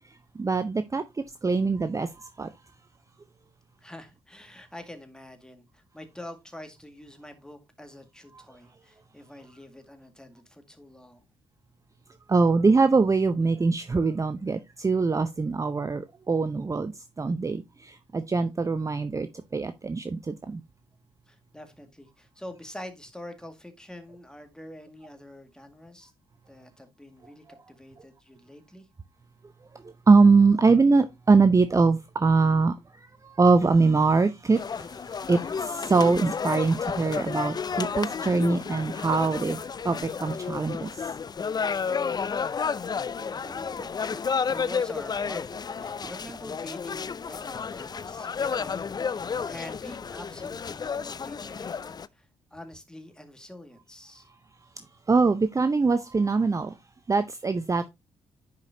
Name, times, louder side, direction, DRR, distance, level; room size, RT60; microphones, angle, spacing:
voice 1, 0.4-1.0 1.4-2.5 12.3-16.9 17.2-19.3 19.5-20.6 30.1-33.1 33.4-39.6 39.8-41.0 43.8-44.2 55.1-56.7 57.1-57.9, right 4 dB, 25° right, 0.6 m, -23 dB
voice 2, 3.8-11.3 21.3-26.1 26.5-28.9 43.5-43.8 44.5-54.3, left 1 dB, 5° left, 2.1 m, -45 dB
sound 1, 34.5-52.1, left 6 dB, 30° left, 0.4 m, -31 dB
10.5 x 5.0 x 2.8 m
hypercardioid pair, 45°, 14 cm